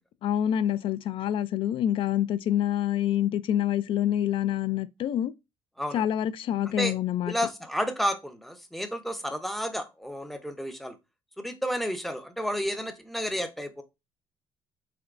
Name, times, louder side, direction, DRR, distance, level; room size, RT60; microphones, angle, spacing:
voice 1, 0.2-5.3 5.9-7.3, left 11 dB, 50° left, 0.4 m, -26 dB
voice 2, 7.3-11.0 11.4-13.8, equal, ahead, 0.6 m, -31 dB
3.8 x 3.3 x 2.5 m
cardioid pair, 130°, 11 cm